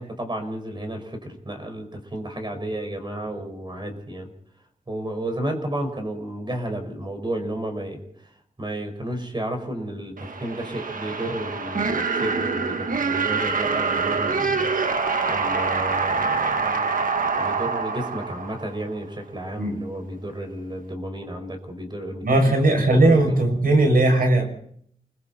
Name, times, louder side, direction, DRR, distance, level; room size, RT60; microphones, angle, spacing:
voice 1, 0.0-4.3 4.9-16.9 17.4-23.4, right 1 dB, 30° right, 5 dB, 5.2 m, -32 dB
sound 1, 10.2-19.0, right 4 dB, 70° right, 1.4 m, -25 dB
voice 2, 22.2-24.5, right 2 dB, 85° right, 3 dB, 6.8 m, -18 dB
29.0 x 22.0 x 4.3 m, 0.64 s
wide cardioid pair, 100°, 15 cm